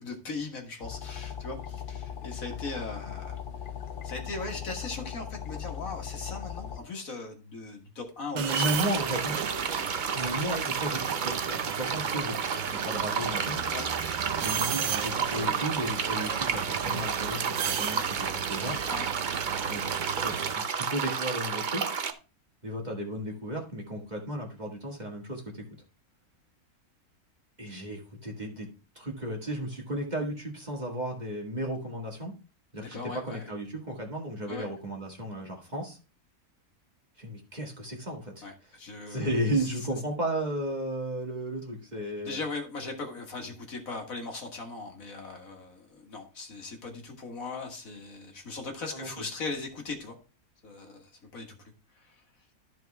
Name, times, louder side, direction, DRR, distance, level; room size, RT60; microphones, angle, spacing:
voice 1, 0.0-3.4 4.0-8.4 8.8-8.9 10.1-10.3 13.7-13.9 18.9-19.1 32.8-33.5 34.5-34.7 38.4-39.7 42.2-50.2 50.6-51.6 52.0-52.2, left 3 dB, 65° left, 2 dB, 2.0 m, -39 dB
sound 1, 0.8-6.8, left 8 dB, 90° left, 0.4 m, -38 dB
voice 2, 8.3-9.3 10.1-13.6 14.4-18.8 19.6-19.8 20.2-21.9 22.6-25.6 27.6-28.7 29.0-32.3 32.7-33.0 33.2-36.0 37.2-38.8 39.1-42.4 48.9-49.2, right 1 dB, 30° right, 0 dB, 1.9 m, -34 dB
sound 2, 8.4-20.5, right 8 dB, 65° right, 1.1 m, -35 dB
Water stream, 8.5-22.1, right 6 dB, 50° right, 0.6 m, -31 dB
13.5 x 4.5 x 3.4 m, 0.33 s
omnidirectional pair, 1.6 m